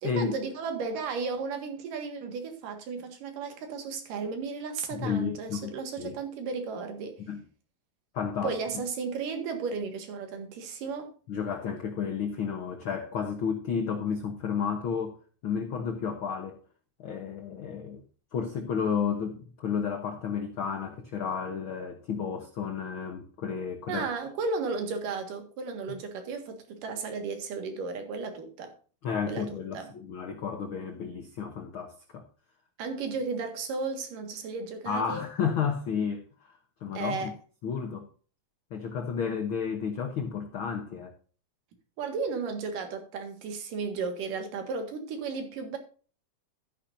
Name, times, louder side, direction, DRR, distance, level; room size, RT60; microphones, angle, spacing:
voice 1, 0.0-7.2 8.4-11.1 23.9-28.7 29.3-29.9 32.8-35.2 36.9-37.3 42.0-45.8, right 4 dB, 75° right, 3.4 m, -34 dB
voice 2, 4.9-5.7 6.0-6.1 7.3-7.4 8.1-8.5 11.3-15.2 15.4-16.6 17.0-18.0 18.3-24.1 29.0-32.2 34.8-37.3 37.6-38.1 38.7-41.1, left 6 dB, 75° left, 1.1 m, -32 dB
12.0 x 10.0 x 2.6 m
omnidirectional pair, 3.9 m